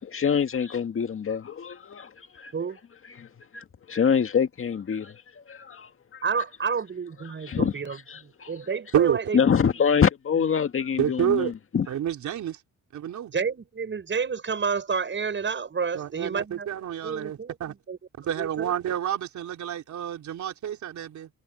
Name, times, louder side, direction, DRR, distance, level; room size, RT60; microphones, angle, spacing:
voice 1, 0.0-2.5 3.2-5.2 5.5-6.2 7.5-7.7 8.1-8.5 9.3-11.9, left 7 dB, 45° left, 1.9 m, -25 dB
voice 2, 6.2-9.4 13.3-16.7 17.0-18.0 18.4-18.7, right 5 dB, 40° right, 7.2 m, -30 dB
voice 3, 11.0-11.5 11.9-12.6 12.9-13.3 15.9-17.7 18.2-21.3, right 10 dB, 70° right, 3.9 m, -28 dB
cardioid pair, 90°, 30 cm